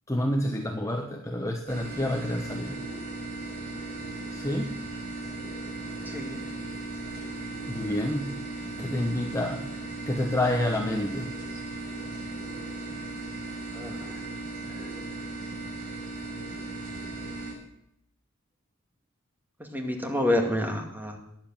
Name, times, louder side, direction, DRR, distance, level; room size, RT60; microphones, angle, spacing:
voice 1, 0.1-2.8 4.3-4.8 7.7-8.4 8.8-11.4, left 1 dB, 15° left, 3 dB, 1.1 m, -29 dB
sound 1, 1.7-17.5, right 2 dB, 40° right, 6.3 m, -37 dB
voice 2, 6.1-6.4 8.6-8.9 13.7-14.2 14.7-14.9 19.6-21.2, left 1 dB, 10° right, 3 dB, 2.1 m, -29 dB
20.5 x 7.9 x 7.5 m, 0.79 s
head